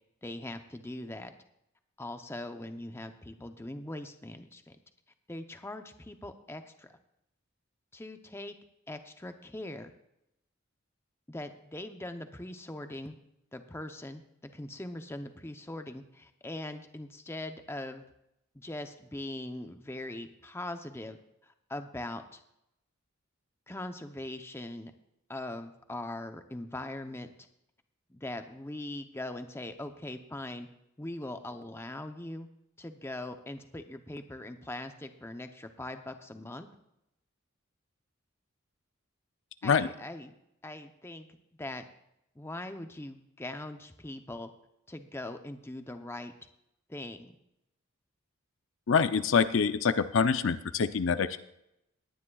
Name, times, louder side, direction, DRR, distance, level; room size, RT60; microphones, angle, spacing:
voice 1, 0.2-1.3 2.0-4.8 5.3-6.9 7.9-8.5 8.9-9.9 11.3-13.2 13.5-18.0 18.5-22.4 23.7-24.9 25.3-27.3 28.1-30.7 31.0-32.5 32.8-36.7 39.6-40.3 40.6-41.3 41.6-41.8 42.4-44.5 44.9-46.3 46.9-47.3, left 1 dB, 10° left, 7 dB, 0.6 m, -41 dB
voice 2, 48.9-51.4, left 5 dB, 65° left, 12 dB, 0.5 m, -25 dB
19.5 x 10.0 x 2.3 m, 0.82 s
head